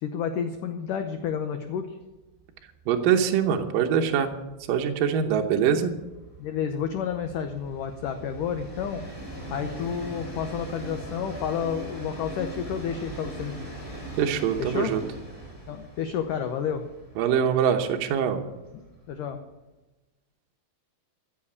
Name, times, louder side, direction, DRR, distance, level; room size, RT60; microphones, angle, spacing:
voice 1, 0.0-2.0 6.4-9.0 9.5-13.5 14.6-14.9 15.7-16.8 18.7-19.4, left 7 dB, 90° left, 7 dB, 1.8 m, -30 dB
Train, 1.2-1.4 1.7-1.8 2.1-19.5, right 2 dB, 10° left, 4.4 m, -41 dB
voice 2, 2.9-4.3 4.7-5.9 14.2-15.0 17.2-18.4, right 8 dB, 70° right, 4 dB, 2.2 m, -23 dB
15.0 x 7.5 x 8.5 m, 1.1 s
omnidirectional pair, 5.0 m